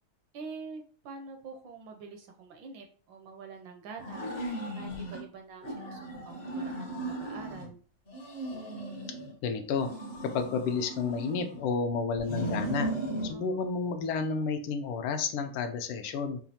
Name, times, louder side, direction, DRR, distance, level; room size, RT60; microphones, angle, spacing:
voice 1, 0.3-4.3 4.7-7.8 13.3-13.6, right 4 dB, 75° right, 4 dB, 1.1 m, -46 dB
sound 1, 4.0-5.2 5.6-7.7 8.1-9.3 9.7-11.7 12.2-13.3, right 1 dB, 45° left, 0.8 m, -36 dB
voice 2, 9.4-9.9 10.2-12.9 13.2-16.4, left 5 dB, 80° left, 7 dB, 1.5 m, -31 dB
5.0 x 2.3 x 2.8 m, 0.43 s
omnidirectional pair, 2.4 m